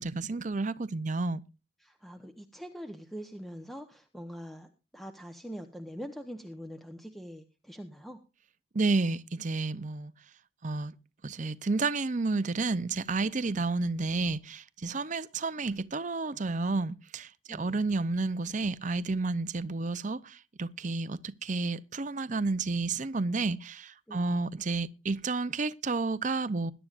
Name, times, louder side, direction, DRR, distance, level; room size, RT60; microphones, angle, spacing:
voice 1, 0.0-1.4 8.7-10.1 10.6-10.9 11.2-26.7, right 3 dB, 40° right, 0.6 m, -31 dB
voice 2, 1.8-8.2 17.5-17.8 24.1-24.4, equal, ahead, 0.9 m, -43 dB
21.0 x 11.0 x 2.5 m
head